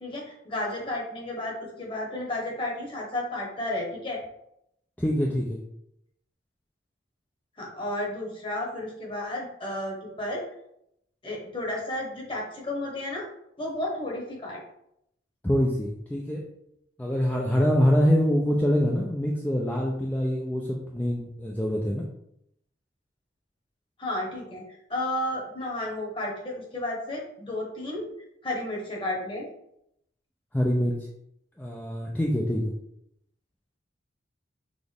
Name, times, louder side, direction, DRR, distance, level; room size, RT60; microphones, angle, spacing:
voice 1, 0.0-4.2 7.6-10.4 11.2-13.3 13.6-14.6 24.0-24.6 24.9-28.1 28.4-29.5, left 1 dB, 30° left, -2 dB, 1.2 m, -32 dB
voice 2, 5.0-5.6 15.4-16.4 17.0-22.1 30.5-31.0 31.6-32.7, equal, 10° left, -2 dB, 0.4 m, -25 dB
6.0 x 2.5 x 3.5 m, 0.77 s
head